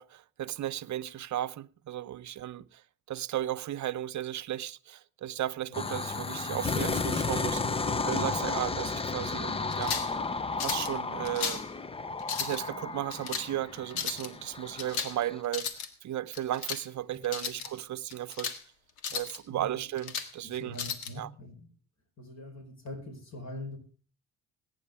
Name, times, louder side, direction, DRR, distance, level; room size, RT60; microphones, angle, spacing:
voice 1, 0.0-2.8 3.1-10.0 10.6-11.6 12.4-18.5 19.1-20.8 21.1-21.3, right 12 dB, 50° right, 0.8 m, -35 dB
sound 1, 5.7-15.4, left 4 dB, 15° left, 0.6 m, -33 dB
sound 2, 9.7-10.1 10.6-10.9 11.2-11.7 12.2-12.6 13.1-13.5 13.9-14.3 14.8-15.2 15.4-15.9 16.3-16.8 17.2-17.7 18.1-18.6 19.0-19.4 19.8-20.3 20.8-21.1, left 6 dB, 80° left, 1.6 m, -35 dB
voice 2, 19.5-19.8 20.4-21.7 22.2-23.8, left 1 dB, 45° left, 4.8 m, -43 dB
20.5 x 9.3 x 3.5 m
supercardioid pair, 80°, 37 cm